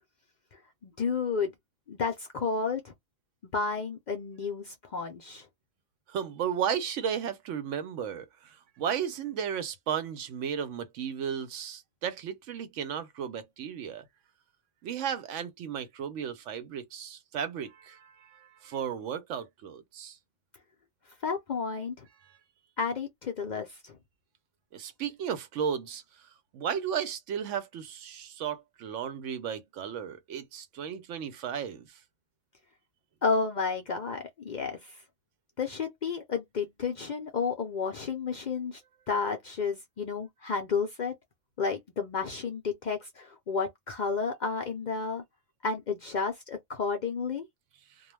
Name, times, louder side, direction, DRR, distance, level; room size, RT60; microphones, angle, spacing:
voice 1, 0.8-1.5 1.9-2.9 3.5-5.5 21.2-22.1 22.8-24.0 33.2-35.0 35.6-38.8 39.1-41.1 41.6-45.2 45.6-47.5, left 5 dB, 60° left, 0.5 m, -31 dB
voice 2, 6.1-14.1 14.8-20.2 24.7-26.0 26.5-31.9, right 8 dB, 85° right, 0.9 m, -34 dB
2.2 x 2.1 x 3.1 m
omnidirectional pair, 1.2 m